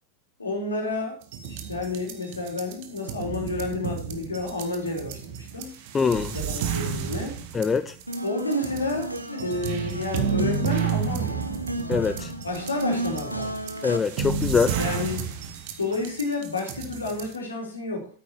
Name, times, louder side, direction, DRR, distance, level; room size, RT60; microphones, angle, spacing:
voice 1, 0.4-5.8 6.3-7.4 8.2-11.4 12.4-13.6 14.8-15.3 15.8-18.1, left 2 dB, 75° left, 1 dB, 3.9 m, -30 dB
sound 1, 1.2-17.4, right 7 dB, 50° right, 1.5 m, -31 dB
voice 2, 5.9-6.3 7.5-7.9 11.9-12.3 13.8-14.8, left 5 dB, 15° left, 12 dB, 0.6 m, -23 dB
sound 2, 8.1-14.0, right 1 dB, 85° right, 1.2 m, -33 dB
9.3 x 8.7 x 4.6 m, 0.39 s
figure-of-eight pair, 90°, 0 cm